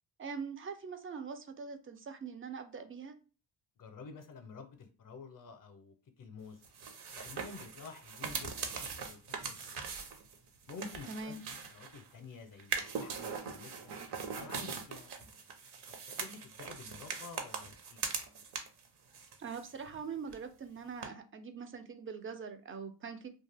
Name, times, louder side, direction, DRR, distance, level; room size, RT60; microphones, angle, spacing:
voice 1, 0.2-3.2 11.1-11.4 19.4-23.3, right 5 dB, 30° right, 0.4 m, -43 dB
voice 2, 3.8-6.6 7.1-10.0 10.7-14.0 14.3-15.3 16.1-18.0, left 4 dB, 45° left, 0.5 m, -50 dB
sound 1, 6.6-12.1 12.6-18.9 19.1-20.0 20.3-20.4 21.0-21.1, right 5 dB, 55° right, 0.7 m, -41 dB
2.4 x 2.2 x 3.2 m
cardioid pair, 80°, 46 cm